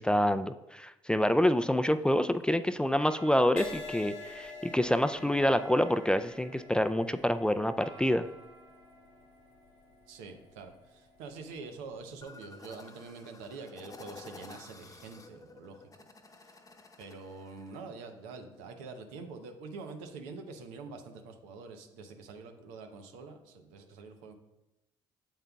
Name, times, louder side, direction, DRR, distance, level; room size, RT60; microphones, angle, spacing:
voice 1, 0.0-8.3, left 1 dB, 5° left, 11 dB, 0.4 m, -27 dB
sound 1, 1.8-12.0, right 2 dB, 40° right, 2.7 m, -56 dB
Crash cymbal, 3.6-11.2 11.9-12.2, left 3 dB, 85° left, 1.1 m, -47 dB
voice 2, 10.1-16.1 16.4-16.6 17.0-24.3, right 4 dB, 85° right, 6 dB, 0.8 m, -46 dB
sound 2, 12.2-17.8, left 3 dB, 25° left, 0.9 m, -52 dB
8.8 x 7.2 x 2.3 m, 0.95 s
hypercardioid pair, 55°, 13 cm